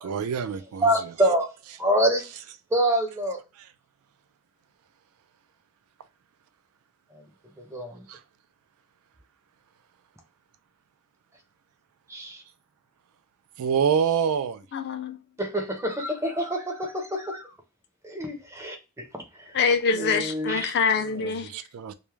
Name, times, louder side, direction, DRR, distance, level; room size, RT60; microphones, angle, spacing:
voice 1, 0.0-0.9 8.1-8.2 13.6-14.6 21.1-21.9, right 7 dB, 75° right, 0.3 m, -26 dB
voice 2, 0.8-1.5 1.8-2.3 2.7-3.4 7.1-7.2 7.6-8.0 12.1-12.4 15.4-17.5 18.0-19.1 19.3-19.6 19.9-20.7, right 1 dB, 15° right, 0.6 m, -26 dB
voice 3, 14.7-15.2 19.5-21.5, left 5 dB, 50° left, 0.4 m, -25 dB
2.3 x 2.0 x 3.0 m
head